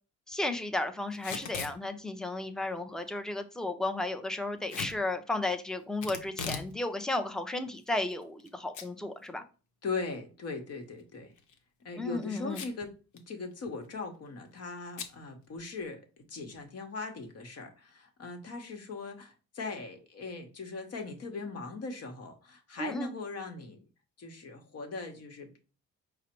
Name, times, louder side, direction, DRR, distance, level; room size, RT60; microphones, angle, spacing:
voice 1, 0.3-9.4 12.0-12.6 22.8-23.1, left 2 dB, ahead, 6 dB, 0.5 m, -34 dB
Packing tape duct tape / Tearing, 1.1-1.8 4.7-5.0 6.0-6.7 7.1-7.2 7.9-8.5 8.7-8.9 9.3-9.4 11.3-11.6 12.5-12.9 13.2-13.3 13.5-13.9 15.0-15.1, left 5 dB, 80° left, 0.8 m, -39 dB
voice 2, 9.8-11.3 11.8-13.0 13.3-23.8 24.2-25.6, left 3 dB, 55° left, 5 dB, 1.0 m, -39 dB
4.8 x 2.0 x 4.3 m, 0.34 s
cardioid pair, 90°, 30 cm